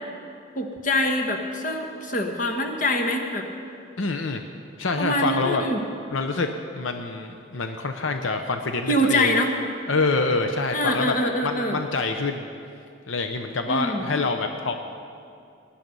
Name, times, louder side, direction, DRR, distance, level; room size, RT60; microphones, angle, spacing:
voice 1, 0.5-3.5 5.0-5.8 8.9-9.5 10.7-11.8 13.7-14.1, left 1 dB, 40° left, 3 dB, 1.3 m, -24 dB
voice 2, 4.0-4.4 4.8-5.6 6.1-6.5 6.8-9.4 9.9-11.1 11.4-12.5 13.1-14.7, left 3 dB, 75° left, 6 dB, 0.7 m, -26 dB
18.5 x 10.0 x 5.4 m, 2.5 s
head